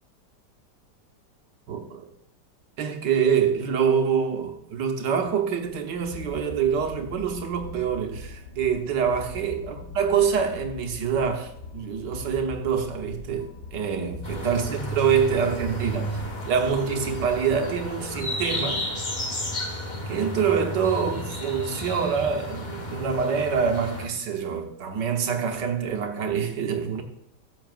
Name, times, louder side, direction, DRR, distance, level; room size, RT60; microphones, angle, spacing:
voice 1, 1.7-2.1 2.8-18.9 20.1-27.0, right 7 dB, 75° right, 1.7 m, -26 dB
sound 1, 5.6-19.7, left 4 dB, 75° left, 1.6 m, -41 dB
sound 2, 14.2-24.1, left 1 dB, 30° left, 1.0 m, -33 dB
14.0 x 7.3 x 2.4 m
omnidirectional pair, 1.9 m